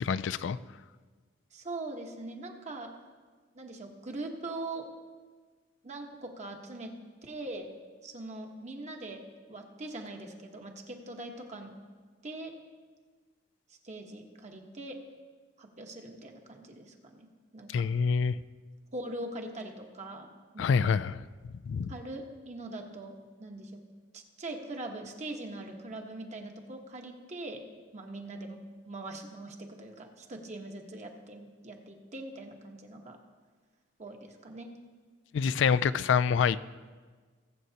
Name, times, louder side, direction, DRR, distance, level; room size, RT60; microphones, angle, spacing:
voice 1, 0.0-0.6 17.7-18.4 20.6-21.2 21.7-21.9 35.3-36.6, left 6 dB, 75° left, 15 dB, 0.3 m, -26 dB
voice 2, 1.5-2.9 3.5-4.9 5.8-6.9 7.2-7.7 8.0-9.2 9.5-11.7 12.2-12.6 13.7-15.0 15.6-17.3 17.5-17.7 18.9-20.8 21.9-23.7 24.1-27.7 27.9-28.6 28.9-33.2 34.0-34.7, right 2 dB, 40° right, 2 dB, 1.1 m, -42 dB
20.5 x 7.9 x 2.8 m, 1.4 s
head